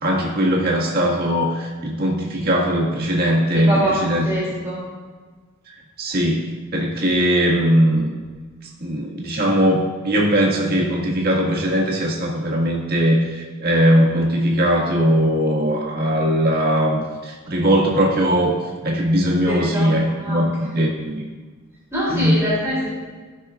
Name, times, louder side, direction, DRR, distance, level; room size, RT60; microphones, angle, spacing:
voice 1, 0.0-4.2 5.7-8.1 8.8-18.5 18.8-21.3 22.1-22.5, equal, 45° right, -3 dB, 1.7 m, -20 dB
voice 2, 3.7-4.8 19.5-19.9 20.2-20.4 21.9-22.9, equal, 15° right, -7 dB, 2.8 m, -23 dB
16.0 x 6.1 x 2.4 m, 1.4 s
head